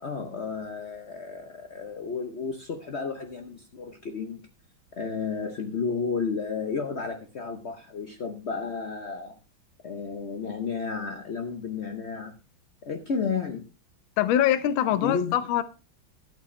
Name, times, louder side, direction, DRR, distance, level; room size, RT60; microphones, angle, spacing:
voice 1, 0.0-4.5 5.0-9.3 9.8-12.4 12.8-13.6 14.9-15.4, left 5 dB, 90° left, 5 dB, 0.5 m, -32 dB
voice 2, 14.2-15.6, left 11 dB, 70° left, 13 dB, 1.4 m, -23 dB
12.0 x 8.5 x 3.2 m, 0.31 s
omnidirectional pair, 2.4 m